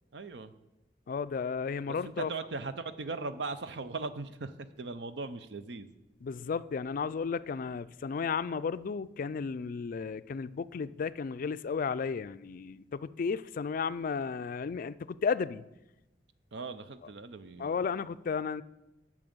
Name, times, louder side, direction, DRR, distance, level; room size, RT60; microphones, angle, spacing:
voice 1, 0.1-0.5 1.9-5.9 16.5-17.8, right 3 dB, 70° right, 0.6 m, -39 dB
voice 2, 1.1-2.3 6.2-15.6 17.6-18.6, left 5 dB, 50° left, 0.3 m, -33 dB
8.8 x 6.3 x 7.8 m
head